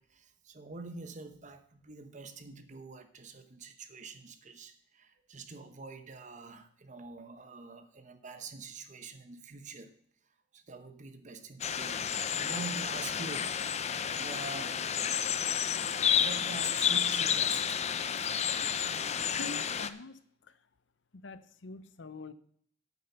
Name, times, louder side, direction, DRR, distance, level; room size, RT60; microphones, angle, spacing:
voice 1, 0.0-9.9 10.5-14.9 15.6-15.8 16.2-17.9, right 4 dB, 40° right, 9 dB, 1.0 m, -46 dB
sound 1, 11.6-19.9, left 8 dB, 35° left, 0.5 m, -31 dB
voice 2, 19.0-20.6 21.1-22.3, left 3 dB, 85° left, 14 dB, 0.7 m, -46 dB
8.6 x 8.4 x 5.6 m, 0.62 s
head